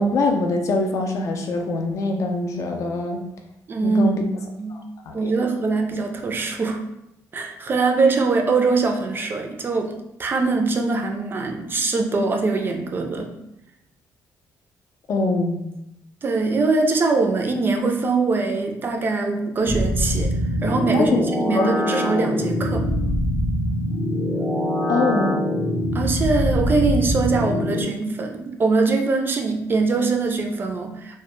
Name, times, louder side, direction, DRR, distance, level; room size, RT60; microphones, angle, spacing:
voice 1, 0.0-3.2 3.8-4.2 4.7-5.3 15.1-15.7 20.9-21.2 21.5-21.7 24.9-25.4, left 2 dB, 55° left, 3 dB, 0.4 m, -23 dB
voice 2, 3.7-4.2 4.6-4.8 5.1-6.8 7.3-9.9 10.2-13.3 16.2-20.3 20.6-22.8 25.9-31.2, right 3 dB, 35° right, 3 dB, 0.3 m, -22 dB
sound 1, 19.7-27.8, left 1 dB, 10° left, 0.7 m, -23 dB
2.1 x 2.0 x 3.0 m, 0.84 s
cardioid pair, 110°, 7 cm